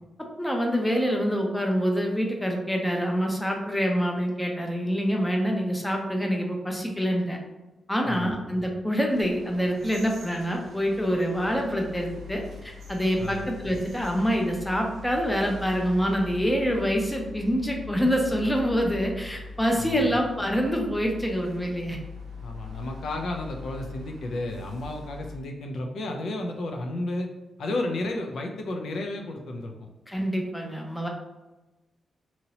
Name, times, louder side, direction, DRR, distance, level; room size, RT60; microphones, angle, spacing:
voice 1, 0.4-7.4 7.9-22.0 30.1-31.1, equal, 5° left, 1 dB, 0.5 m, -26 dB
voice 2, 8.1-8.4 13.2-13.5 19.8-20.1 22.4-27.3 27.6-29.9, left 2 dB, 80° left, 3 dB, 0.4 m, -32 dB
sound 1, 9.1-25.4, left 3 dB, 70° right, 0.6 m, -42 dB
2.9 x 2.7 x 2.7 m, 1.1 s
cardioid pair, 110°, 0 cm